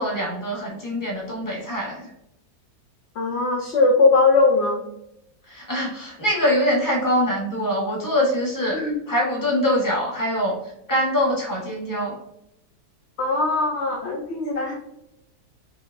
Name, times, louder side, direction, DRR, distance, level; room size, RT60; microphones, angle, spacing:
voice 1, 0.0-2.1 5.5-8.8 9.1-12.2, equal, 15° left, -5 dB, 1.2 m, -24 dB
voice 2, 3.2-4.8 8.7-9.0 13.2-14.7, left 3 dB, 60° left, 0 dB, 0.7 m, -20 dB
5.0 x 2.8 x 2.6 m, 0.82 s
omnidirectional pair, 1.7 m